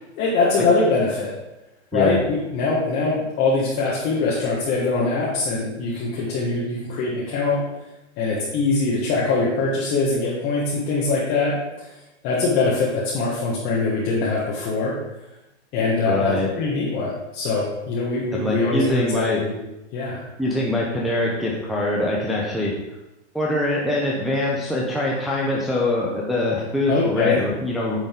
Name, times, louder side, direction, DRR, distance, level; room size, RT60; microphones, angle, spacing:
voice 1, 0.2-1.3 1.9-7.6 8.2-11.9 12.2-14.9 15.7-19.5 19.9-20.2 26.9-27.4, left 3 dB, 35° left, -5 dB, 1.5 m, -23 dB
voice 2, 16.0-16.5 18.3-19.4 20.4-22.7 23.3-28.0, left 1 dB, ahead, -5 dB, 0.6 m, -23 dB
9.1 x 4.0 x 3.7 m, 0.97 s
hypercardioid pair, 125°, 35 cm